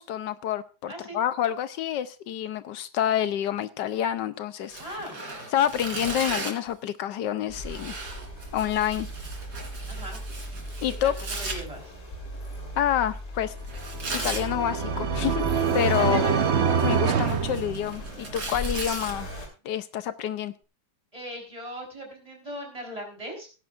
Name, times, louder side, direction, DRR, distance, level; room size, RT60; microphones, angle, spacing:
voice 1, 0.0-4.8 5.5-7.9 8.5-9.1 10.8-11.1 12.8-13.5 14.1-16.2 16.8-19.3 19.6-20.5, left 10 dB, 85° left, 12 dB, 1.4 m, -28 dB
voice 2, 0.9-1.2 4.8-5.2 9.9-10.2 11.0-11.9 16.0-16.4 21.1-23.5, equal, 20° right, 1 dB, 4.2 m, -38 dB
Tearing, 4.7-6.7 7.5-11.6 13.7-14.5 15.7-16.3 16.7-19.1, right 3 dB, 65° right, 3.4 m, -36 dB
Accelerating revving vroom, 7.5-19.4, equal, 45° left, 3.2 m, -38 dB
sound 1, 13.8-18.4, right 6 dB, 50° right, 0.9 m, -25 dB
17.0 x 10.5 x 2.5 m, 0.33 s
omnidirectional pair, 1.9 m